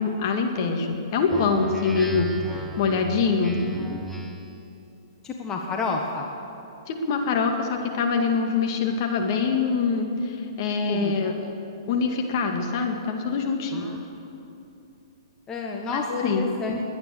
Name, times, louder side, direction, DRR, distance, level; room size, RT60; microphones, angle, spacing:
voice 1, 0.0-3.6 6.9-11.3 11.9-13.9 15.8-16.5, left 5 dB, 50° left, 3 dB, 2.1 m, -24 dB
Speech synthesizer, 1.3-4.6, right 1 dB, ahead, 1.1 m, -35 dB
voice 2, 5.2-6.3 10.9-11.3 13.7-14.0 15.5-16.8, left 3 dB, 20° left, 1 dB, 1.3 m, -30 dB
21.0 x 9.7 x 6.8 m, 2.8 s
hypercardioid pair, 130°, 3 cm